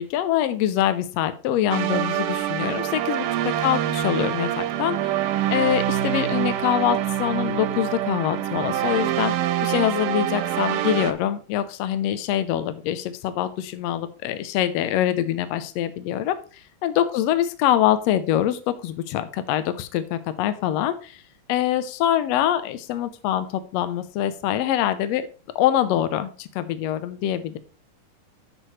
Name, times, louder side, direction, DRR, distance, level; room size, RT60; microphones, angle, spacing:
voice 1, 0.0-5.1 5.5-9.3 9.6-16.4 16.8-21.2 21.5-25.3 25.5-27.6, left 11 dB, 80° left, 11 dB, 1.5 m, -24 dB
sound 1, 1.7-11.1, right 12 dB, 85° right, 2.3 m, -25 dB
13.5 x 4.8 x 3.2 m, 0.36 s
omnidirectional pair, 3.7 m